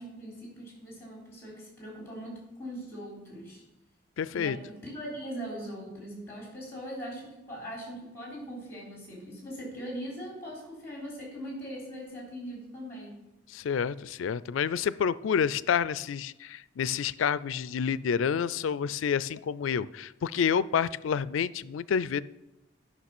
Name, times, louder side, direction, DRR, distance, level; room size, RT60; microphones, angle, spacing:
voice 1, 0.0-3.6 4.3-13.2, equal, 10° left, -3 dB, 3.8 m, -41 dB
voice 2, 4.2-4.6 13.5-22.2, left 7 dB, 85° left, 18 dB, 0.4 m, -29 dB
11.0 x 5.9 x 6.0 m, 0.97 s
head